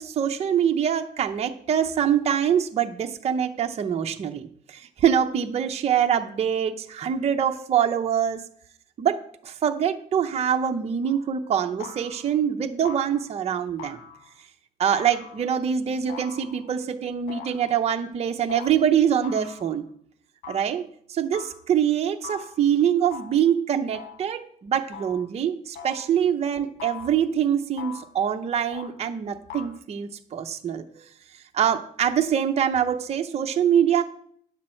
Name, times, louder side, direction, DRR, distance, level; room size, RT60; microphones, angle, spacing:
voice 1, 0.0-8.4 9.0-9.2 9.4-14.0 14.8-19.8 20.5-20.8 21.1-31.0 31.5-34.0, right 8 dB, 40° right, 4 dB, 0.7 m, -24 dB
sound 1, 11.0-11.3 11.8-12.3 12.8-13.3 13.8-14.4 14.9-15.6 16.1-16.8 17.3-17.8 18.5-18.7 19.2-19.8 20.4-20.7 21.3-21.6 22.2-22.6 23.1-23.5 23.9-24.3 24.9-25.3 25.7-26.1 26.8-27.3 27.8-28.2 28.7-29.0 29.5-29.8, left 6 dB, 80° left, 1.8 m, -41 dB
9.7 x 7.5 x 4.4 m, 0.63 s
cardioid pair, 110°, 17 cm